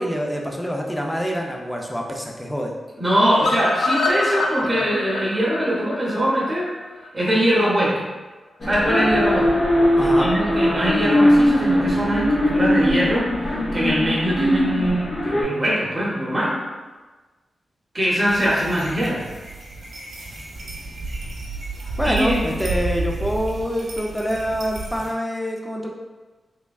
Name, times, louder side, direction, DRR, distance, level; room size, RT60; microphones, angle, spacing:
voice 1, 0.0-2.7 10.0-10.3 22.0-25.9, equal, 5° left, 0 dB, 0.4 m, -26 dB
voice 2, 3.0-6.7 7.1-8.0 8.6-9.5 10.0-16.6 17.9-19.2 22.0-22.4, equal, 20° right, -6 dB, 0.8 m, -22 dB
sound 1, 3.4-7.4 7.8-7.9 8.2-8.3 8.6-8.7, left 2 dB, 80° left, 0.4 m, -26 dB
sound 2, 8.6-15.4, equal, 45° left, 0.7 m, -20 dB
sound 3, 18.3-25.1, right 2 dB, 70° right, 0.8 m, -31 dB
3.3 x 3.2 x 2.3 m, 1.3 s
wide cardioid pair, 155°, 0 cm